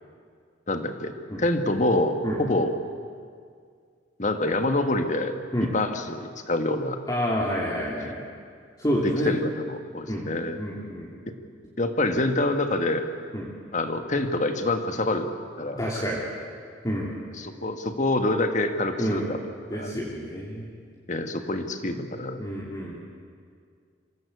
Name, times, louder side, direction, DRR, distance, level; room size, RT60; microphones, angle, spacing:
voice 1, 0.7-2.7 4.2-5.3 5.7-7.0 8.0-8.1 9.0-10.6 11.8-13.1 13.7-15.3 15.6-15.8 17.4-19.4 19.7-19.9 21.1-22.4, left 2 dB, 40° left, 7 dB, 1.6 m, -26 dB
voice 2, 7.1-8.2 8.8-9.4 10.1-10.3 10.5-11.1 13.3-13.5 15.8-16.2 16.8-17.1 19.0-19.3 19.7-20.7 22.4-23.0, equal, 20° left, -5 dB, 2.7 m, -28 dB
26.5 x 17.0 x 8.3 m, 2.1 s
head